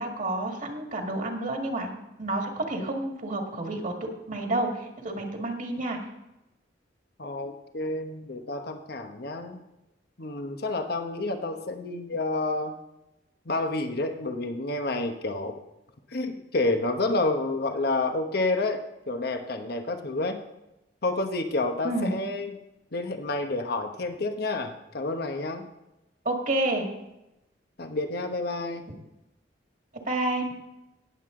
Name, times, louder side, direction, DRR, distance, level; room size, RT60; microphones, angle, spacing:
voice 1, 0.0-1.9 2.2-6.0 21.8-22.1 26.3-26.8 30.1-30.5, right 2 dB, 50° right, 2 dB, 1.9 m, -29 dB
voice 2, 7.2-9.6 10.2-12.8 13.5-15.5 16.1-20.4 21.0-22.6 22.9-25.6 27.8-28.8, left 2 dB, 60° left, 6 dB, 1.1 m, -29 dB
18.0 x 7.8 x 3.8 m, 0.92 s
head